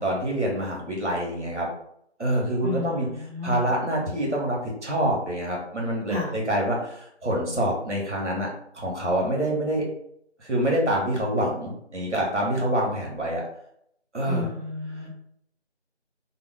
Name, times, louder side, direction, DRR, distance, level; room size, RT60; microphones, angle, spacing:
voice 1, 0.0-1.7 2.2-3.1 3.4-8.5 8.7-9.8 10.4-13.4 14.1-14.5, right 1 dB, 80° right, -2 dB, 1.4 m, -26 dB
voice 2, 2.6-3.6 6.1-6.3 14.2-15.1, left 3 dB, 30° right, -8 dB, 0.9 m, -32 dB
2.8 x 2.2 x 3.4 m, 0.71 s
figure-of-eight pair, 170°, 34 cm